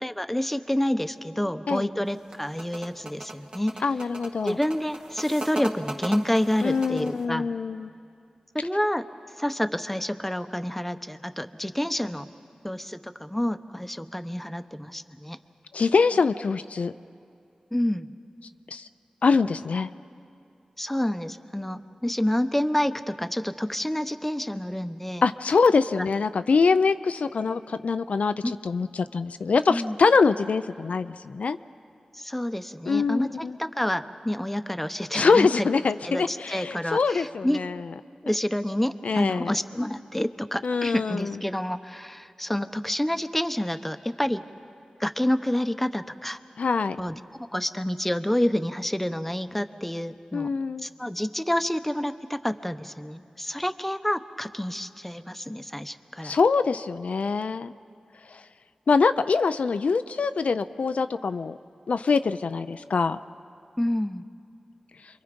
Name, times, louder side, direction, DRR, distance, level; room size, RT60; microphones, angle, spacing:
voice 1, 0.0-3.8 4.4-7.5 8.5-9.1 9.4-12.3 12.6-15.4 17.7-18.1 20.8-25.2 26.0-26.1 28.4-28.5 29.7-30.0 32.1-33.3 33.6-35.7 36.0-37.6 38.2-44.4 45.0-46.4 47.0-50.5 50.8-56.4 63.8-64.2, left 1 dB, 10° left, 9 dB, 0.9 m, -28 dB
sound 1, 2.1-7.2, right 1 dB, 35° right, 2.0 m, -37 dB
voice 2, 3.8-4.6 6.6-7.9 15.7-16.9 18.7-18.9 19.2-19.9 25.2-31.6 32.9-33.6 35.1-37.8 39.0-39.5 40.6-41.4 46.6-47.0 50.3-50.9 56.2-57.7 58.3-58.4 58.9-61.6 61.9-63.2, left 4 dB, 80° left, 11 dB, 0.4 m, -24 dB
28.0 x 23.0 x 5.2 m, 2.5 s
cardioid pair, 45°, 2 cm